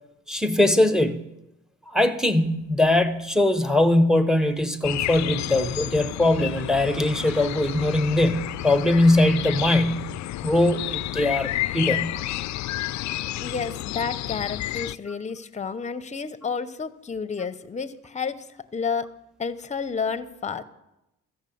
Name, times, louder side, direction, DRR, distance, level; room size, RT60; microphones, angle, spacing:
voice 1, 0.3-1.3 1.9-10.1 10.4-12.2 15.1-15.2, left 1 dB, ahead, 10 dB, 1.0 m, -21 dB
sound 1, 4.8-15.0, left 15 dB, 65° left, 0.4 m, -31 dB
voice 2, 13.4-18.4 18.7-19.1 19.4-20.6, left 5 dB, 25° left, 13 dB, 0.8 m, -30 dB
13.5 x 6.5 x 8.5 m, 0.90 s
cardioid pair, 90°, 30 cm